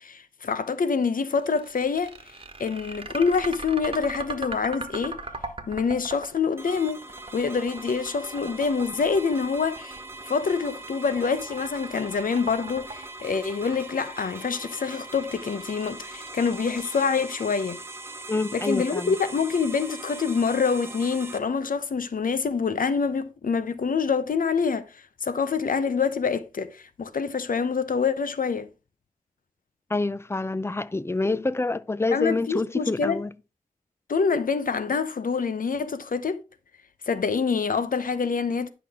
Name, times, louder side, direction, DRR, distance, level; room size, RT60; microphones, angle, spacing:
voice 1, 0.0-2.1 2.6-5.2 5.7-7.0 7.3-10.0 10.3-17.8 18.5-24.9 25.2-28.7 32.1-33.2 34.1-36.4 37.1-38.7, left 5 dB, 75° left, 0.8 m, -26 dB
sound 1, 1.3-17.4, right 3 dB, 40° right, 1.3 m, -39 dB
sound 2, 6.6-21.4, right 2 dB, 15° right, 1.2 m, -41 dB
voice 2, 18.3-19.1 29.9-33.3, left 3 dB, 20° left, 0.4 m, -27 dB
10.0 x 5.9 x 3.6 m
wide cardioid pair, 85°, 14 cm